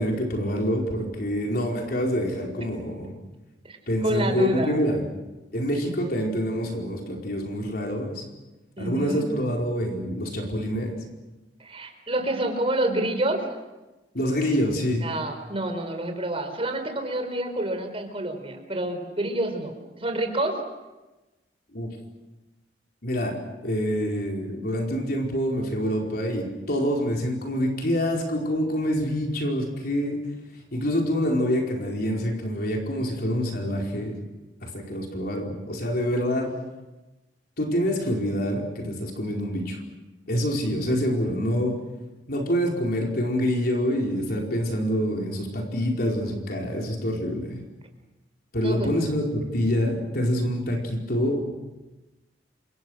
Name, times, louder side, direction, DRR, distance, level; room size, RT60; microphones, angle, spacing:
voice 1, 0.0-3.1 3.9-5.0 5.5-8.2 8.8-10.9 14.1-15.0 21.7-21.9 23.0-30.2 30.7-34.2 34.6-36.5 37.6-39.8 40.3-41.7 42.3-47.6 48.5-51.6, equal, 55° left, 0 dB, 4.7 m, -26 dB
voice 2, 4.0-4.8 8.8-9.2 11.6-13.5 15.0-20.6 48.6-48.9, right 1 dB, 35° right, 5 dB, 4.7 m, -28 dB
29.5 x 26.0 x 6.5 m, 1.1 s
head